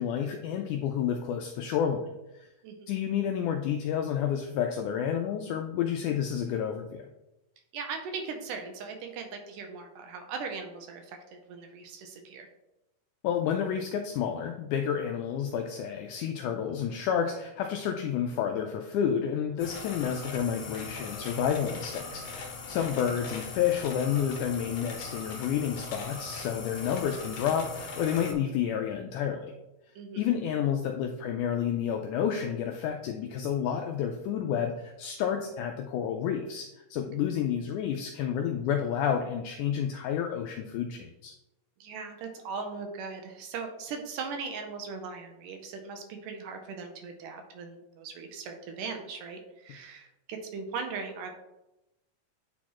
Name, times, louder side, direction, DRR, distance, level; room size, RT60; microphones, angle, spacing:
voice 1, 0.0-2.0 2.3-2.5 2.9-7.1 13.2-29.5 30.2-41.3, left 8 dB, 85° left, 4 dB, 1.8 m, -30 dB
voice 2, 7.7-12.5 22.7-22.8 30.0-30.3 41.8-51.3, right 5 dB, 80° right, 4 dB, 2.1 m, -39 dB
sound 1, 19.6-28.3, left 3 dB, 65° left, 1.8 m, -40 dB
9.2 x 4.2 x 3.0 m, 0.94 s
omnidirectional pair, 4.0 m